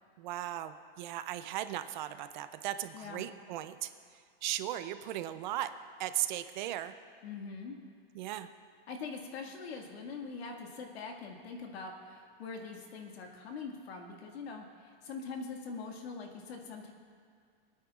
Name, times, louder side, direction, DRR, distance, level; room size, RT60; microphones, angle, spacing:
voice 1, 0.2-3.9 4.4-5.7 6.0-6.9 8.2-8.5, right 13 dB, 50° right, 11 dB, 0.5 m, -37 dB
voice 2, 2.9-3.3 7.2-7.8 8.9-16.9, left 4 dB, 80° left, 2 dB, 2.0 m, -43 dB
26.5 x 9.3 x 2.4 m, 2.1 s
supercardioid pair, 160°, 31 cm